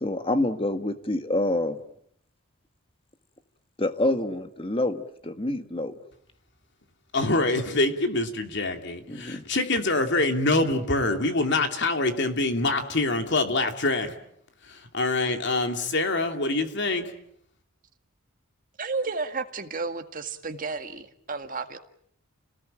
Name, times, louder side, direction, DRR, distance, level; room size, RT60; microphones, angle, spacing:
voice 1, 0.0-1.8 3.8-5.9 9.1-9.4, left 1 dB, 25° left, 9 dB, 1.6 m, -27 dB
voice 2, 7.1-14.2 14.7-17.1, left 2 dB, 55° left, 6 dB, 2.9 m, -25 dB
voice 3, 18.8-21.8, right 4 dB, 40° right, 6 dB, 2.0 m, -32 dB
30.0 x 19.0 x 8.9 m, 0.70 s
head